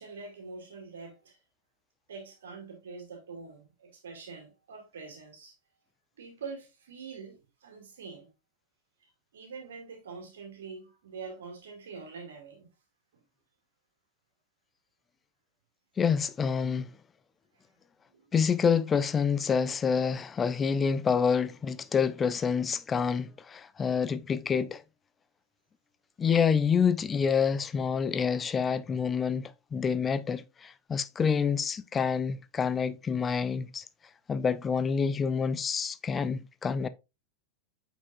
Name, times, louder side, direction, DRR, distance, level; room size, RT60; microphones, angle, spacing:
voice 1, 0.0-1.4 2.1-5.5 6.2-8.3 9.3-12.7 18.1-18.3, right 4 dB, 65° right, 2.4 m, -44 dB
voice 2, 16.0-16.9 18.3-24.8 26.2-33.8 34.3-36.9, left 6 dB, 20° left, 0.5 m, -27 dB
8.3 x 4.7 x 2.5 m
figure-of-eight pair, 90°, 0 cm